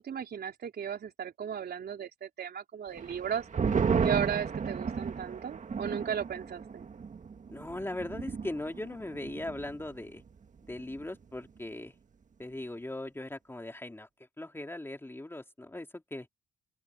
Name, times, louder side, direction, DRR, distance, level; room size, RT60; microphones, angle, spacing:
voice 1, 0.0-3.4 4.0-6.9, right 8 dB, 55° right, 4.0 m, -35 dB
sound 1, 3.0-9.9 10.2-10.3 10.7-11.2, right 6 dB, 40° right, 1.8 m, -33 dB
voice 2, 7.5-10.2 10.6-11.9 12.4-14.1 14.4-16.3, left 1 dB, 10° left, 2.8 m, -39 dB
open air
cardioid pair, 90°, 20 cm